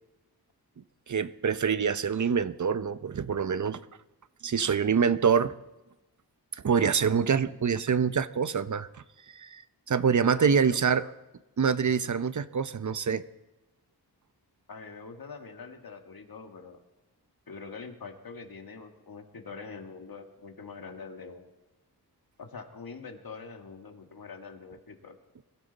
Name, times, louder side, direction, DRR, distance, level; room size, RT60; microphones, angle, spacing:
voice 1, 1.1-3.8 4.4-5.5 6.5-8.9 9.3-9.6 9.9-11.0 11.6-13.2, right 6 dB, 50° right, 14 dB, 0.7 m, -25 dB
voice 2, 10.3-11.1 14.7-16.8 17.5-21.5 22.4-25.2, left 4 dB, 60° left, 5 dB, 1.8 m, -44 dB
22.5 x 15.0 x 4.1 m, 1.0 s
cardioid pair, 55°, 39 cm